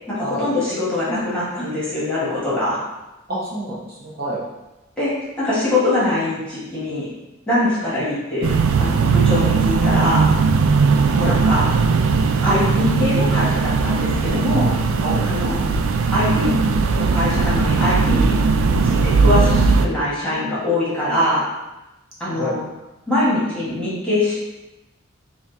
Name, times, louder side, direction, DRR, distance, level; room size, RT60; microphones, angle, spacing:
voice 1, 0.1-2.8 5.0-7.1 7.5-8.5 8.8-10.3 11.2-11.7 12.4-14.7 15.2-15.6 16.1-16.5 17.0-18.3 18.6-21.4 22.2-22.6 23.1-24.4, left 1 dB, 5° left, -10 dB, 1.4 m, -22 dB
voice 2, 3.3-4.4 11.1-11.3 15.0-15.2 22.3-22.5, equal, 50° right, -8 dB, 1.0 m, -27 dB
sound 1, 8.4-19.9, right 4 dB, 85° right, 0.3 m, -18 dB
3.3 x 2.4 x 4.0 m, 1.0 s
head